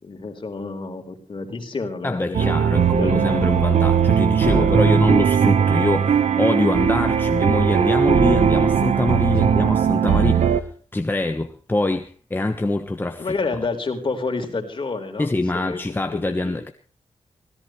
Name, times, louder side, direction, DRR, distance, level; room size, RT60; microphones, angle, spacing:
voice 1, 0.0-3.6 4.4-4.7 9.3-9.6 13.2-16.6, left 3 dB, 45° left, 4.3 m, -30 dB
voice 2, 2.0-10.7 10.9-13.3 15.2-16.7, left 2 dB, 15° left, 1.2 m, -24 dB
sound 1, 2.3-10.6, right 7 dB, 75° right, 1.1 m, -18 dB
25.0 x 17.5 x 3.3 m
wide cardioid pair, 105°, 12 cm